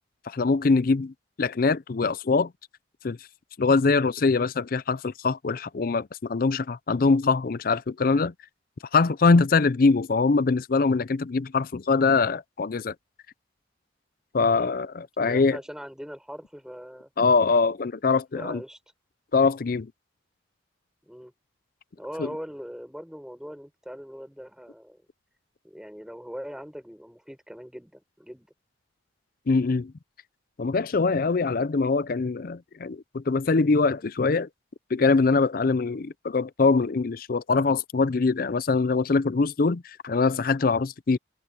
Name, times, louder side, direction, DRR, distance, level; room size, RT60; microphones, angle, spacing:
voice 1, 0.3-2.5 3.0-3.2 3.6-8.3 8.9-12.9 14.3-15.6 17.2-18.6 19.3-19.9 22.2-22.3 29.5-29.9 30.6-34.5 34.9-41.2, left 4 dB, 50° left, 0.5 m, -23 dB
voice 2, 15.2-17.1 18.3-18.8 21.0-21.3 22.0-25.0 25.6-28.5, equal, 5° right, 5.8 m, -41 dB
head